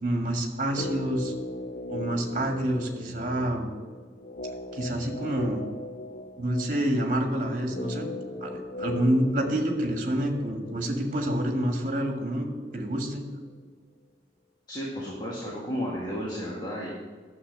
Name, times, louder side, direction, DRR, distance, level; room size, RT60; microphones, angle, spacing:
voice 1, 0.0-1.3 1.9-3.7 4.7-5.6 6.4-8.1 8.4-13.2, right 1 dB, 45° right, 3 dB, 1.6 m, -28 dB
sound 1, 0.6-12.8 13.0-13.1, left 2 dB, 45° left, 0.5 m, -39 dB
voice 2, 14.7-16.9, equal, 25° left, -5 dB, 1.8 m, -33 dB
10.0 x 7.1 x 6.6 m, 1.5 s
head